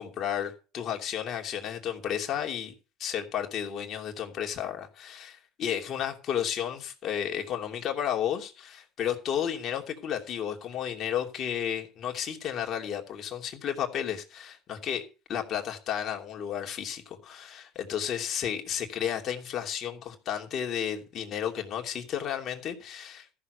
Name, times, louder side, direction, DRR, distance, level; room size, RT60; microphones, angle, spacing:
voice 1, 0.0-2.7 3.0-15.0 15.3-23.3, left 9 dB, 50° left, 2.9 m, -32 dB
14.0 x 6.7 x 6.7 m
hypercardioid pair, 80°, 0 cm